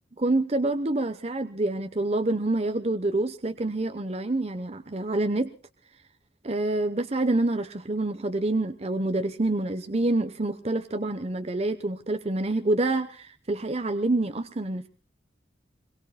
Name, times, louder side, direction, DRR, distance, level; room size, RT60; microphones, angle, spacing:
voice 1, 0.2-5.5 6.4-14.9, right 2 dB, 35° right, 8 dB, 0.8 m, -27 dB
26.5 x 22.0 x 2.2 m, 0.37 s
head